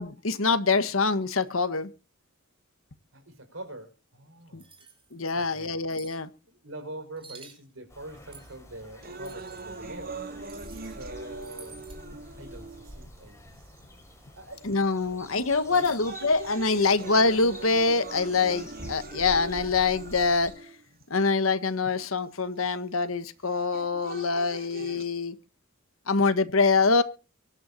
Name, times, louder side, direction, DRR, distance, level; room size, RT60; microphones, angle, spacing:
voice 1, 0.0-1.9 4.5-4.6 5.1-6.3 14.6-20.5 21.1-25.4 26.1-27.0, left 4 dB, 80° left, 1.5 m, -25 dB
voice 2, 3.1-4.7 5.3-5.8 6.5-10.2 10.8-11.8 12.4-13.5 13.8-14.0 14.3-14.9 15.6-15.9, right 1 dB, 70° right, 5.3 m, -44 dB
sound 1, 4.6-5.3 5.9-6.2 7.2-7.6 8.3-8.6 9.2-9.6 10.4-11.0 11.3-12.0 15.7-16.0, right 5 dB, 25° right, 4.5 m, -50 dB
sound 2, 7.9-20.5, left 1 dB, 15° left, 6.0 m, -47 dB
sound 3, 9.0-13.0 13.8-13.9 14.7-15.0 15.5-21.0 22.0-22.1 23.5-25.0, right 3 dB, 50° right, 2.2 m, -42 dB
24.0 x 11.5 x 2.8 m
head